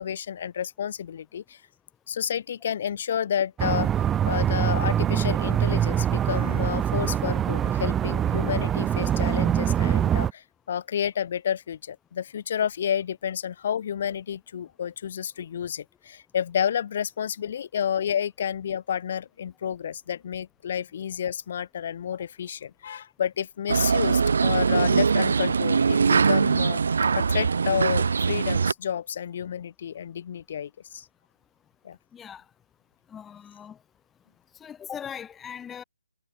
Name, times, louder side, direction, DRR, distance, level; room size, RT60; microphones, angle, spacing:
voice 1, 0.0-1.6 2.1-3.9 4.2-26.8 27.2-31.1 31.8-32.0, left 8 dB, 45° left, 7.9 m, -30 dB
sound 1, 3.6-10.3, right 10 dB, 10° right, 0.5 m, -24 dB
sound 2, 23.7-28.7, right 5 dB, 65° right, 1.9 m, -22 dB
voice 2, 32.1-32.4 33.1-33.8 34.6-35.8, left 8 dB, 10° left, 5.9 m, -40 dB
figure-of-eight pair, 150°, 0 cm